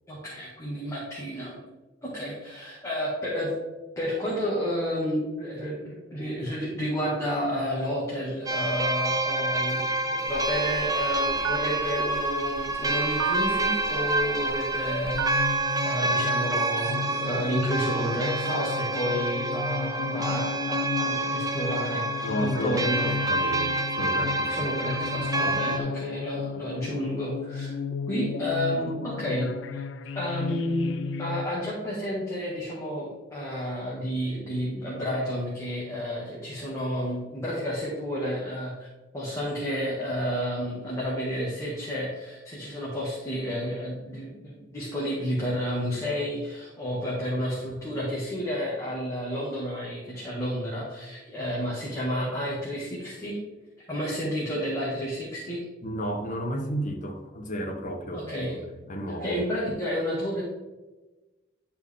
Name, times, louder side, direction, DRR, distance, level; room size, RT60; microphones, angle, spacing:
voice 1, 0.1-1.6 2.0-3.5 4.0-23.1 24.5-27.7 28.1-29.8 30.1-30.9 31.2-38.9 39.1-53.4 53.9-55.6 58.1-58.6 59.2-60.4, equal, 15° left, -7 dB, 1.8 m, -31 dB
sound 1, 8.5-25.8, right 2 dB, 20° right, 0.6 m, -28 dB
Telephone, 10.3-15.6, right 8 dB, 80° right, 0.4 m, -36 dB
sound 2, 15.1-31.5, left 6 dB, 70° left, 0.4 m, -34 dB
voice 2, 22.2-24.7 25.0-25.6 55.8-58.6 58.9-59.4, equal, 45° left, 3 dB, 1.1 m, -33 dB
11.0 x 4.5 x 3.6 m, 1.2 s
head